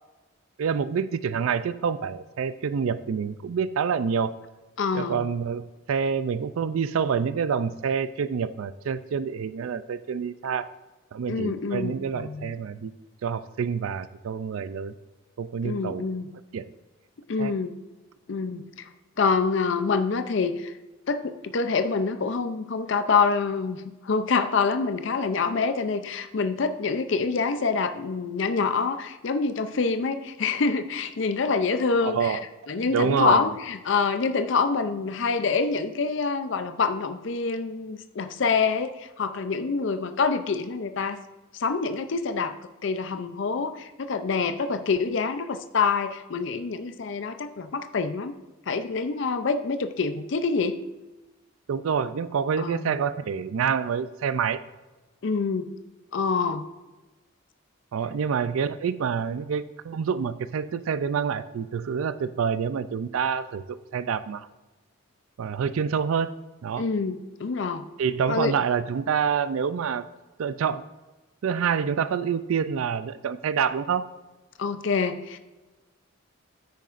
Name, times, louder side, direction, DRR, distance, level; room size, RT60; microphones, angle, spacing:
voice 1, 0.6-4.3 4.9-10.7 11.1-12.9 13.2-14.9 15.4-16.1 16.5-16.7 17.4-17.5 32.0-32.4 32.7-33.5 51.7-54.6 57.9-64.5 65.4-66.3 66.6-66.8 68.0-70.0 70.4-70.8 71.4-74.1, right 6 dB, 75° right, 14 dB, 0.4 m, -27 dB
voice 2, 4.8-5.2 11.3-12.5 15.6-16.3 17.3-17.7 18.3-18.9 19.2-20.8 21.1-32.4 32.7-41.2 41.5-42.5 42.8-48.3 48.7-50.8 52.6-52.9 55.2-55.7 56.1-56.7 66.8-67.8 68.3-68.5 74.6-75.4, left 4 dB, 55° left, 9 dB, 0.5 m, -26 dB
9.2 x 9.2 x 2.5 m, 1.1 s
head